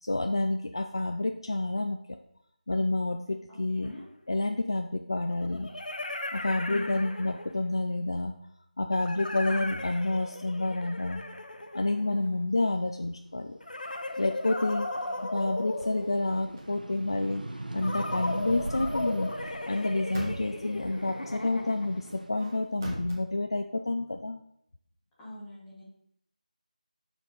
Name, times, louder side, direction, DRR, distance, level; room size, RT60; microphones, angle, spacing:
voice 1, 0.0-2.0 2.7-3.9 4.3-5.7 6.3-8.3 8.8-11.2 11.7-13.6 14.2-14.9 15.3-17.5 17.7-19.3 19.7-24.4, left 2 dB, 35° left, 5 dB, 0.3 m, -29 dB
voice 2, 3.5-4.1 6.6-7.1 9.5-9.7 12.1-12.5 14.6-14.8 15.0-15.2 25.2-25.8, equal, 5° left, -11 dB, 1.3 m, -43 dB
sound 1, 3.8-3.9 5.3-7.7 8.9-12.4 13.6-16.6 17.8-22.1, left 2 dB, 85° left, 0.9 m, -37 dB
sound 2, 12.7-15.2 15.6-22.3, right 1 dB, 90° right, 0.9 m, -41 dB
sound 3, 16.3-16.7 19.6-20.7 22.1-23.2, right 1 dB, 25° right, 1.7 m, -41 dB
11.5 x 4.5 x 3.9 m, 0.72 s
figure-of-eight pair, 180°, 4 cm